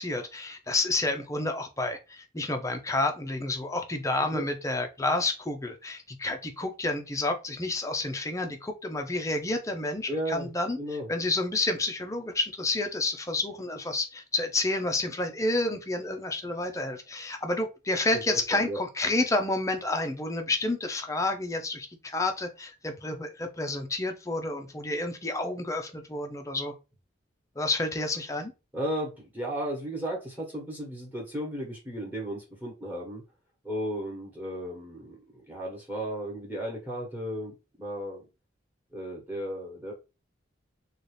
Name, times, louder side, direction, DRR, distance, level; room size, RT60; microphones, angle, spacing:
voice 1, 0.0-10.8 11.1-26.7 27.6-28.5, left 2 dB, 15° left, 5 dB, 0.5 m, -30 dB
voice 2, 10.1-10.5 10.8-11.1 18.3-18.8 28.7-33.2 33.6-38.2 38.9-39.9, equal, 10° right, -1 dB, 1.2 m, -35 dB
4.0 x 2.4 x 3.2 m, 0.28 s
head